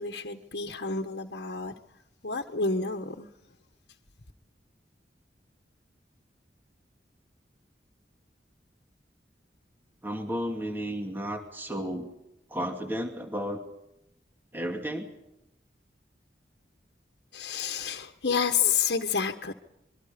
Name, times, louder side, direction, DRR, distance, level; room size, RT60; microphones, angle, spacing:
voice 1, 0.0-1.7 2.2-3.3 17.3-19.5, left 6 dB, 70° left, 1.4 m, -29 dB
voice 2, 10.0-12.1 12.5-13.6 14.5-15.1, equal, 10° right, 2.5 m, -33 dB
26.0 x 23.0 x 5.2 m
head